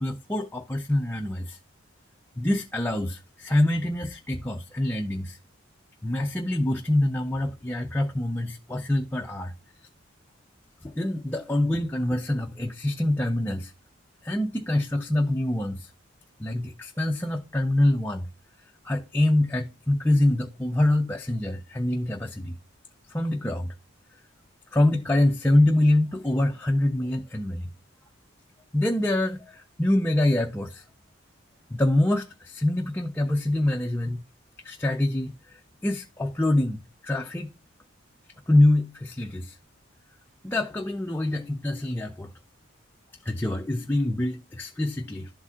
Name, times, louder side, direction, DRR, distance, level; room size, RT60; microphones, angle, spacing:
voice 1, 0.0-1.6 2.4-5.4 6.0-9.5 10.8-13.7 14.2-15.9 16.4-18.3 18.8-22.6 23.1-23.7 24.7-27.7 28.7-30.8 31.7-34.2 34.6-37.5 38.5-39.6 40.4-42.3 43.2-45.3, left 1 dB, 10° left, 0.4 m, -25 dB
12.0 x 4.1 x 2.4 m
head